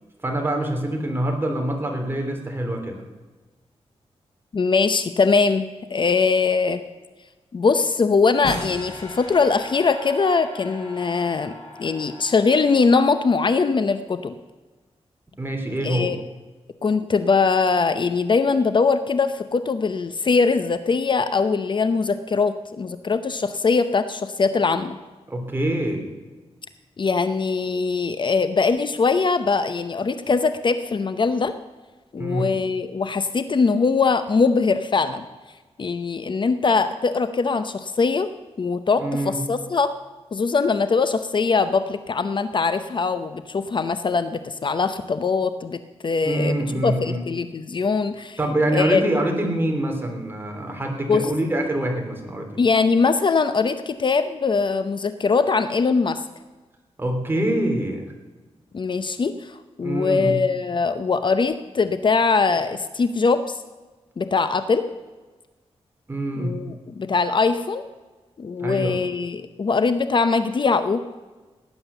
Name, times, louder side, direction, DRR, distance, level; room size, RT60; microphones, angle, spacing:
voice 1, 0.2-3.0 15.4-16.1 25.3-26.1 32.2-32.5 39.0-39.4 46.2-47.3 48.4-52.6 57.0-58.1 59.8-60.4 66.1-66.6 68.6-69.0, right 1 dB, 20° right, 2 dB, 3.4 m, -25 dB
voice 2, 4.5-6.8 7.5-11.5 11.8-14.3 15.8-16.2 16.8-25.0 27.0-31.6 32.1-35.2 35.8-38.3 38.6-39.9 40.3-48.4 48.7-49.0 51.1-51.3 52.6-56.2 58.7-63.6 64.2-64.9 66.4-67.8 68.4-71.0, left 4 dB, 45° left, 11 dB, 0.7 m, -21 dB
sound 1, 8.4-13.6, left 2 dB, 90° left, 5.9 m, -38 dB
18.0 x 10.0 x 6.9 m, 1.3 s
wide cardioid pair, 105°, 11 cm